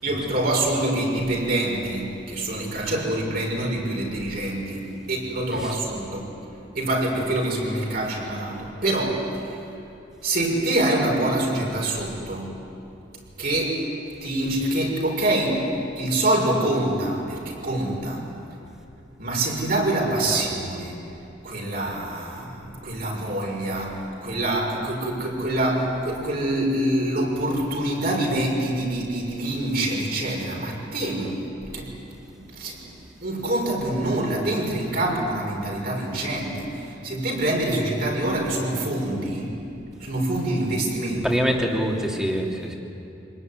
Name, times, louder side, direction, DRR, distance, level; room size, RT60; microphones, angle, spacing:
voice 1, 0.0-6.3 6.7-9.3 10.2-12.5 13.4-13.8 14.2-15.7 16.0-18.3 19.2-20.9 21.4-31.4 31.7-31.9 32.3-32.9 33.2-39.5 40.0-41.4, right 1 dB, 55° right, -1 dB, 6.3 m, -25 dB
voice 2, 41.2-42.8, equal, 5° right, 0 dB, 2.9 m, -25 dB
27.0 x 20.0 x 9.9 m, 2.7 s
head